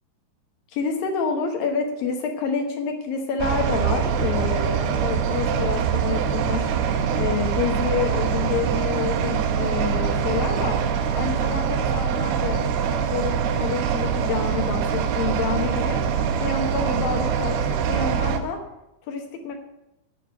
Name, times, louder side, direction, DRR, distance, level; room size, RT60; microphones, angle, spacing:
voice 1, 0.7-6.7 7.1-10.8 11.1-12.6 13.1-16.0 16.4-18.6 19.1-19.6, left 6 dB, 70° left, 3 dB, 2.3 m, -28 dB
sound 1, 3.4-18.4, right 7 dB, 75° right, 2.6 m, -24 dB
9.0 x 8.5 x 7.7 m, 0.92 s
omnidirectional pair, 5.4 m